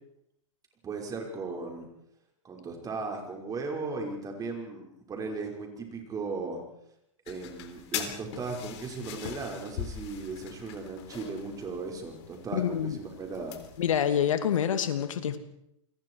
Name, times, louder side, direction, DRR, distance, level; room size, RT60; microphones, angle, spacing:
voice 1, 0.8-1.9 2.4-6.6 7.3-13.6, right 4 dB, 20° right, 2 dB, 5.7 m, -37 dB
sound 1, 7.3-14.0, left 10 dB, 55° left, 3.9 m, -42 dB
voice 2, 12.5-13.0 13.8-15.4, left 9 dB, 75° left, 9 dB, 2.7 m, -27 dB
29.0 x 22.0 x 4.9 m, 0.77 s
hypercardioid pair, 120°, 17 cm